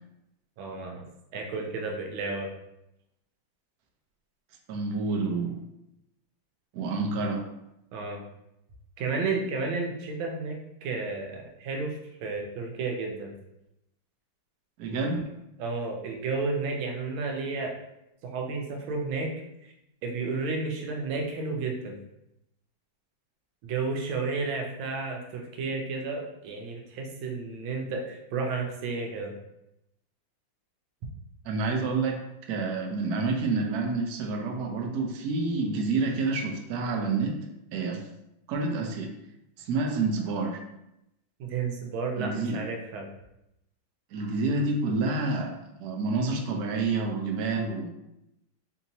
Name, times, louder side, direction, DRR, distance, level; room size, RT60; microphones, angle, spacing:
voice 1, 0.6-1.0 1.3-2.5 7.9-8.2 9.0-13.3 15.6-17.7 18.2-19.3 19.6-19.7 20.0-22.0 23.6-29.3 41.4-43.1, right 4 dB, 85° right, 2 dB, 1.5 m, -32 dB
voice 2, 4.7-5.6 6.7-7.4 14.8-15.2 31.4-32.2 32.5-37.4 37.7-38.1 38.5-39.1 39.6-40.6 42.2-42.6 44.1-47.9, right 3 dB, 65° right, 3 dB, 1.0 m, -28 dB
4.8 x 2.8 x 2.7 m, 0.85 s
omnidirectional pair, 2.1 m